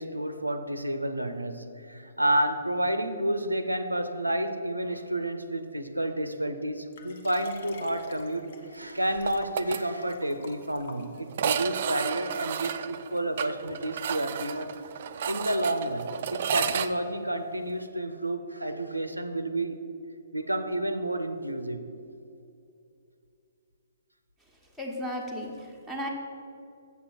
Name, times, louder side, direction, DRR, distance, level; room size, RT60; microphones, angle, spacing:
voice 1, 0.0-8.4 8.7-14.7 15.3-19.8 20.3-21.9, right 1 dB, 85° right, 9 dB, 0.6 m, -30 dB
Liquid, 6.9-11.5 12.2-12.3, left 3 dB, 50° left, 0.9 m, -48 dB
sound 1, 9.3-9.8 10.1-10.2 10.5-10.6 11.3-16.9, right 8 dB, 45° right, 0.4 m, -32 dB
voice 2, 24.8-26.1, equal, ahead, -2 dB, 1.2 m, -35 dB
8.1 x 6.7 x 5.8 m, 2.6 s
figure-of-eight pair, 125°, 0 cm